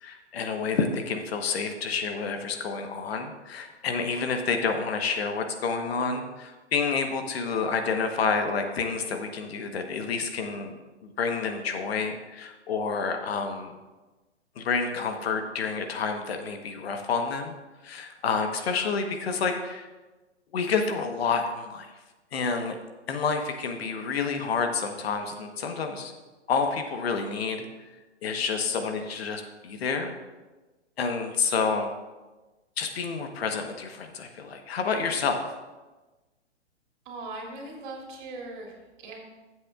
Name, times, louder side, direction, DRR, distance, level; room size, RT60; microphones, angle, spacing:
voice 1, 0.0-10.7 11.0-13.7 14.6-17.5 17.8-19.9 20.5-21.9 22.3-22.8 23.1-26.1 26.5-27.7 28.2-30.1 31.0-31.9 32.8-35.4, left 5 dB, 60° left, 5 dB, 1.2 m, -29 dB
voice 2, 37.0-39.2, right 2 dB, 45° right, -1 dB, 2.8 m, -40 dB
14.5 x 7.7 x 2.4 m, 1.2 s
figure-of-eight pair, 115°, 35 cm